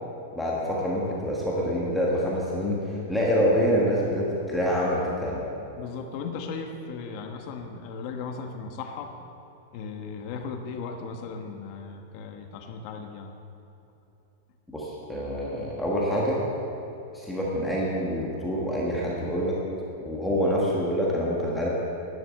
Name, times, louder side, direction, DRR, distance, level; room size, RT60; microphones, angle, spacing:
voice 1, 0.3-5.4 14.7-16.4 17.1-19.6 20.0-21.7, equal, ahead, -5 dB, 1.4 m, -26 dB
voice 2, 5.8-9.1 9.7-13.3, left 5 dB, 35° left, 5 dB, 1.2 m, -37 dB
11.0 x 11.0 x 7.5 m, 2.9 s
supercardioid pair, 175°, 0 cm